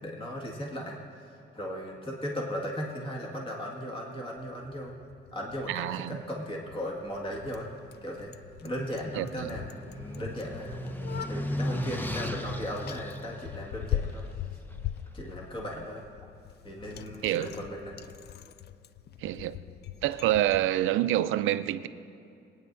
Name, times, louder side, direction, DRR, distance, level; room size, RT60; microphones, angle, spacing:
voice 1, 0.0-4.9 5.3-7.7 8.0-8.3 8.6-10.8 11.3-14.2 15.1-16.0 16.6-18.0, equal, 25° left, 1.9 m, -37 dB
Bicycle, 4.4-20.7, left 10 dB, 55° left, 0.4 m, -41 dB
voice 2, 5.7-6.2 9.2-9.5 17.2-17.6 19.2-19.6 20.0-21.9, right 13 dB, 90° right, 0.5 m, -27 dB
sound 1, 8.6-14.9, left 1 dB, 10° left, 0.7 m, -36 dB
22.0 x 9.6 x 2.6 m
cardioid pair, 90°, 20 cm